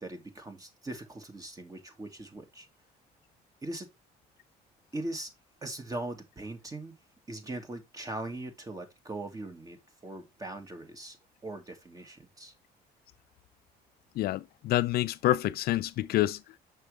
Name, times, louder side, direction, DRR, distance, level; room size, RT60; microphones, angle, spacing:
voice 1, 0.0-2.7 3.6-3.9 4.9-5.3 5.6-6.9 7.3-9.8 10.0-11.2 11.4-12.5, right 2 dB, 20° right, 2.1 m, -40 dB
voice 2, 14.2-16.4, left 15 dB, 65° left, 0.4 m, -27 dB
6.4 x 6.1 x 3.3 m
cardioid pair, 110°, 17 cm